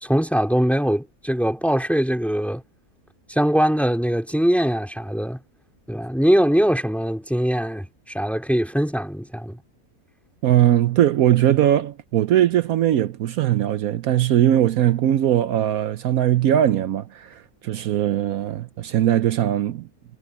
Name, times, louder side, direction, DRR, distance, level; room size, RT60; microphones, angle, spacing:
voice 1, 0.0-2.6 3.3-5.4 5.9-9.6, equal, ahead, 2.6 m, -22 dB
voice 2, 10.4-19.9, right 11 dB, 75° right, 1.1 m, -20 dB
omnidirectional pair, 1.6 m